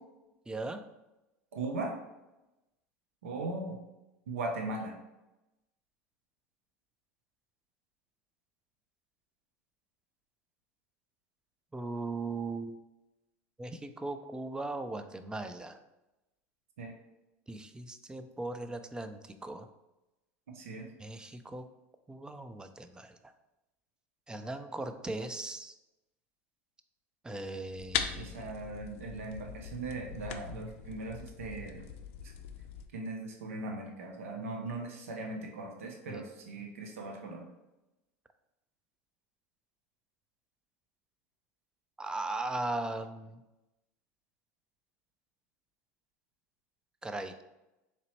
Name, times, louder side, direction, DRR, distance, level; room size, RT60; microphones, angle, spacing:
voice 1, 0.5-0.8 11.7-12.8 13.6-15.8 17.5-19.7 21.0-21.7 22.1-23.2 24.3-25.8 27.2-28.4 36.1-36.2 42.0-43.4 47.0-47.4, right 2 dB, 10° right, 9 dB, 0.4 m, -38 dB
voice 2, 1.5-2.0 3.2-3.8 4.3-5.0 16.8-17.0 20.5-20.9 28.2-31.9 32.9-37.4, right 2 dB, 90° right, 2 dB, 0.7 m, -39 dB
sound 1, 27.8-32.9, left 8 dB, 80° left, 0.4 m, -40 dB
3.9 x 3.0 x 3.0 m, 0.98 s
hypercardioid pair, 95°, 7 cm